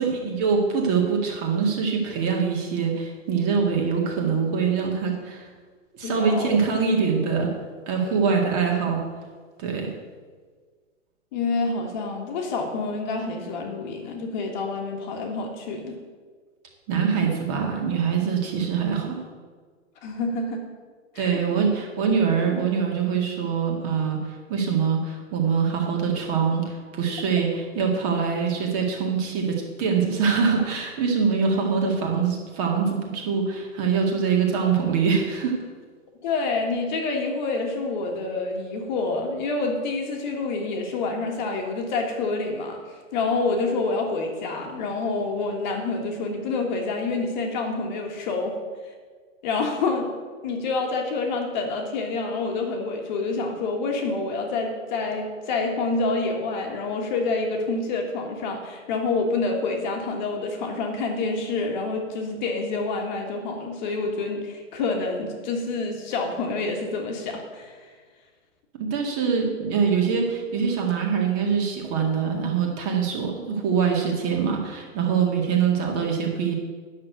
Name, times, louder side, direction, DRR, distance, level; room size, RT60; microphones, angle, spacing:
voice 1, 0.0-5.5 5.9-7.5 7.9-9.0 9.6-9.9 16.9-19.2 21.2-35.6 68.8-76.5, right 6 dB, 30° right, 1 dB, 2.0 m, -24 dB
voice 2, 6.0-6.6 8.1-8.3 11.3-16.0 20.0-20.7 21.1-21.4 36.2-48.9 49.4-50.2 50.4-67.8, left 3 dB, 35° left, 2 dB, 1.5 m, -27 dB
9.6 x 6.7 x 8.1 m, 1.5 s
hypercardioid pair, 155°, 39 cm